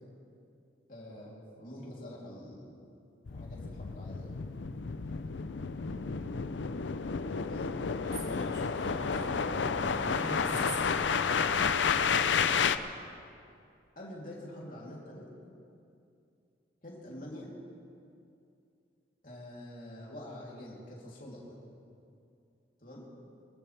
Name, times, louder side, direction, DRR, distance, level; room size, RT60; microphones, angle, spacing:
voice 1, 0.9-2.7 3.3-4.4 7.4-7.7 13.9-15.3 16.8-17.5 19.2-21.6 22.8-23.1, left 1 dB, 45° left, -4 dB, 3.3 m, -46 dB
sound 1, 3.3-12.8, left 5 dB, 90° left, 0.6 m, -31 dB
voice 2, 8.0-11.7, right 1 dB, 25° right, -4 dB, 3.0 m, -43 dB
25.0 x 14.0 x 3.4 m, 2.5 s
head